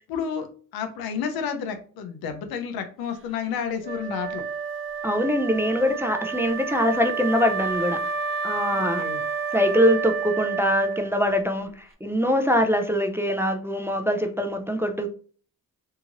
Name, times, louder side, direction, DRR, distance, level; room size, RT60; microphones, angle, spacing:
voice 1, 0.1-0.5 0.7-4.4 8.7-9.2, left 7 dB, 85° left, 7 dB, 0.6 m, -30 dB
Wind instrument woodwind instrument, 3.8-11.4, right 5 dB, 35° right, 0.6 m, -30 dB
voice 2, 5.0-8.0 8.4-9.0 9.5-15.1, equal, 5° right, 4 dB, 0.3 m, -23 dB
2.8 x 2.5 x 2.8 m, 0.41 s
cardioid pair, 80°, 35 cm